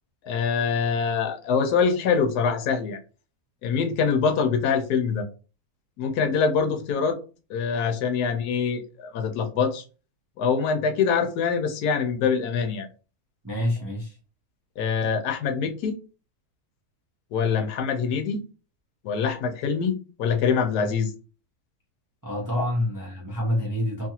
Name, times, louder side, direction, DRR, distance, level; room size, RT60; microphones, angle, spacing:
voice 1, 0.2-3.0 3.6-5.3 6.0-7.2 7.5-9.8 10.4-12.9 14.8-16.0 17.3-18.4 19.0-21.1, left 6 dB, 80° left, 1.2 m, -24 dB
voice 2, 13.4-14.2 22.2-24.1, left 1 dB, 30° right, 0.3 m, -27 dB
3.0 x 2.4 x 2.7 m
omnidirectional pair, 1.6 m